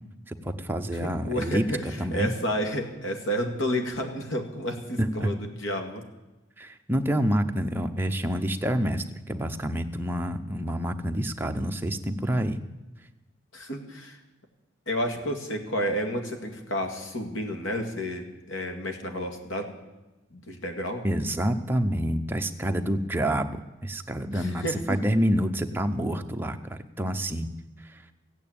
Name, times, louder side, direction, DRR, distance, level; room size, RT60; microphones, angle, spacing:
voice 1, 0.3-2.3 5.0-5.3 6.6-12.6 21.0-27.5 27.8-28.0, equal, 10° right, 5 dB, 0.8 m, -28 dB
voice 2, 0.9-6.0 13.5-14.2 14.9-19.8 20.3-21.1 24.3-25.0, equal, 80° left, 5 dB, 2.2 m, -31 dB
15.0 x 9.0 x 8.8 m, 1.1 s
head